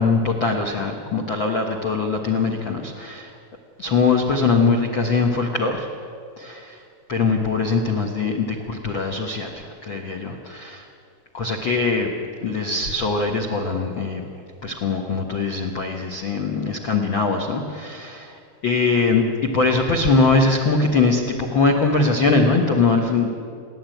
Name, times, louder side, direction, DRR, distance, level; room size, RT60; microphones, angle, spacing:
voice 1, 0.0-3.3 3.8-5.9 6.4-6.8 7.1-10.8 11.3-12.1 12.4-14.3 14.6-23.3, left 4 dB, 70° left, 2 dB, 1.1 m, -22 dB
28.5 x 11.5 x 9.2 m, 2.4 s
omnidirectional pair, 4.5 m